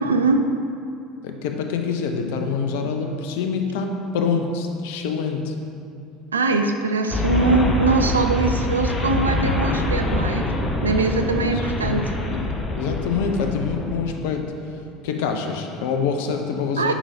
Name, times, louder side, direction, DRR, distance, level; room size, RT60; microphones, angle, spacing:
voice 1, 0.0-0.5 6.3-10.5 10.8-12.3 16.8-16.9, right 3 dB, 80° right, 6 dB, 0.4 m, -22 dB
voice 2, 1.2-5.6 11.2-14.5 15.0-16.9, left 5 dB, 65° left, 4 dB, 0.6 m, -26 dB
sound 1, 7.1-14.0, left 2 dB, 30° left, 0.9 m, -25 dB
9.9 x 5.4 x 2.7 m, 2.5 s
figure-of-eight pair, 65°, 0 cm